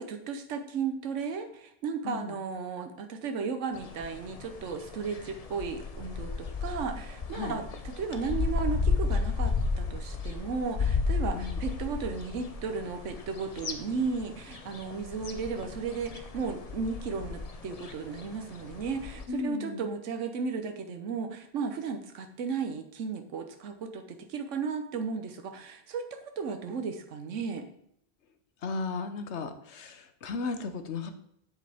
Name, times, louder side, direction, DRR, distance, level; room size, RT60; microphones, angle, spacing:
voice 1, 0.0-7.7 7.9-27.7, right 5 dB, 85° right, 7 dB, 1.2 m, -35 dB
voice 2, 2.0-2.4 7.3-7.6 11.3-11.6 19.3-19.8 28.6-31.1, left 4 dB, 70° left, 9 dB, 1.2 m, -35 dB
sound 1, 3.7-19.2, left 4 dB, 35° left, 0.7 m, -33 dB
9.2 x 7.6 x 3.5 m, 0.72 s
omnidirectional pair, 1.2 m